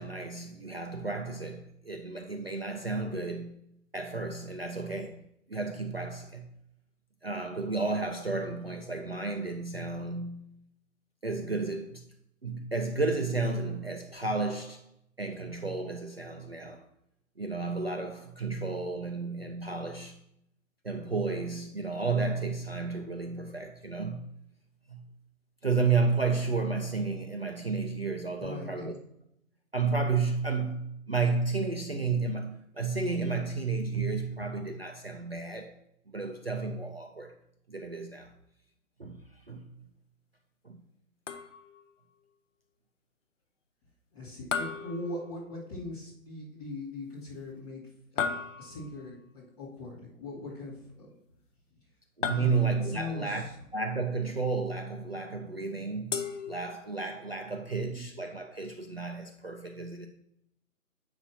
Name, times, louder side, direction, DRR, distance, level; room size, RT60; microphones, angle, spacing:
voice 1, 0.0-3.6 3.9-5.2 5.5-6.5 7.2-10.4 11.2-12.0 12.4-14.8 15.2-16.9 17.4-20.2 20.8-24.3 24.9-25.1 25.6-28.9 29.7-35.7 36.1-37.4 37.7-38.3 39.0-39.7 40.6-40.8 52.2-53.5 53.7-60.1, right 4 dB, 45° right, 0.5 m, -32 dB
voice 2, 28.4-28.9 44.1-47.9 48.1-51.1 52.3-53.4 57.5-58.0, left 2 dB, 25° left, 2.3 m, -40 dB
sound 1, 41.3-41.9 44.5-45.8 48.2-49.1 52.2-53.0 56.1-57.1, left 5 dB, 55° left, 0.7 m, -36 dB
8.0 x 5.9 x 2.7 m
hypercardioid pair, 180°, 44 cm